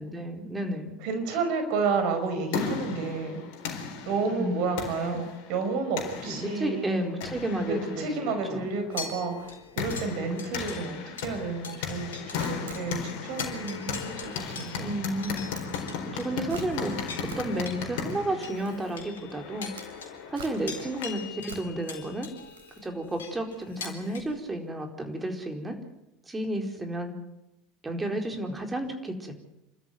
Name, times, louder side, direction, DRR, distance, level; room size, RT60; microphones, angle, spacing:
voice 1, 0.0-1.0 4.3-5.2 6.2-8.7 10.6-11.0 14.8-15.4 16.1-17.0 17.4-19.7 20.3-22.3 22.8-25.8 26.3-27.1 27.8-29.3, right 1 dB, 15° right, 4 dB, 4.5 m, -32 dB
voice 2, 1.0-3.4 4.0-6.9 7.7-9.5 9.8-15.0, right 4 dB, 60° right, 7 dB, 5.1 m, -31 dB
sound 1, 2.1-21.3, left 6 dB, 65° left, 4.2 m, -37 dB
sound 2, 8.9-12.5 12.7-12.9 13.3-24.2, left 6 dB, 80° left, 4.0 m, -43 dB
Camera, 12.4-24.4, right 4 dB, 80° right, 4.1 m, -49 dB
27.5 x 13.5 x 9.6 m, 0.91 s
hypercardioid pair, 75°, 0 cm